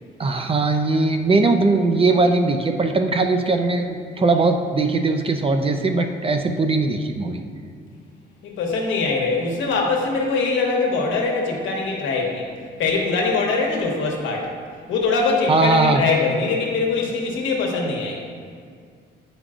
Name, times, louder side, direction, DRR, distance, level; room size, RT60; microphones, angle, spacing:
voice 1, 0.2-7.4 15.5-16.0, right 3 dB, 30° right, 5 dB, 0.5 m, -20 dB
voice 2, 8.4-12.5 12.8-14.5 14.9-18.2, left 3 dB, 80° left, 0 dB, 1.2 m, -22 dB
8.5 x 5.2 x 2.5 m, 2.1 s
cardioid pair, 90°, 20 cm